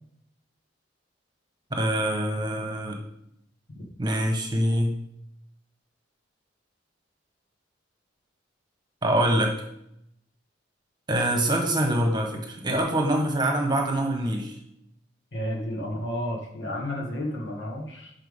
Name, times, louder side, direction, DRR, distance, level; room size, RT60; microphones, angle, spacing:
voice 1, 1.7-3.0 4.0-4.9 9.0-9.5 11.1-14.6, right 1 dB, 25° right, 2 dB, 1.2 m, -24 dB
voice 2, 15.3-18.1, equal, 70° left, -1 dB, 1.9 m, -31 dB
10.5 x 5.8 x 3.7 m, 0.79 s
head